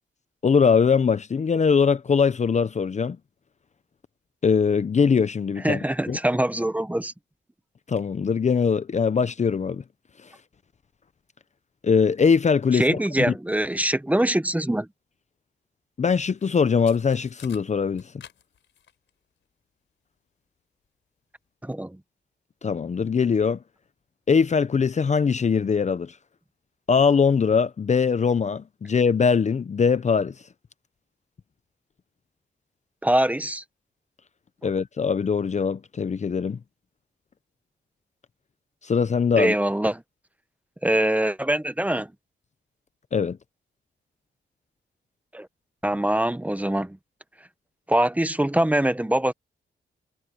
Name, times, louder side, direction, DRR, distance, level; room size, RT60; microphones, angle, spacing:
voice 1, 0.4-3.2 4.4-6.2 7.9-9.8 11.8-13.0 16.0-18.0 22.6-23.6 24.3-26.1 26.9-30.3 34.6-36.6 38.8-39.5 43.1-43.4, left 6 dB, 40° left, 0.7 m, -21 dB
voice 2, 5.6-7.1 12.7-14.9 21.6-22.0 33.0-33.6 39.4-40.0 40.8-42.1 45.3-45.5 45.8-47.0 47.9-49.3, right 1 dB, 10° right, 1.0 m, -23 dB
sound 1, 16.4-16.5 16.9-19.1, left 9 dB, 85° left, 4.3 m, -49 dB
cardioid pair, 90°, 19 cm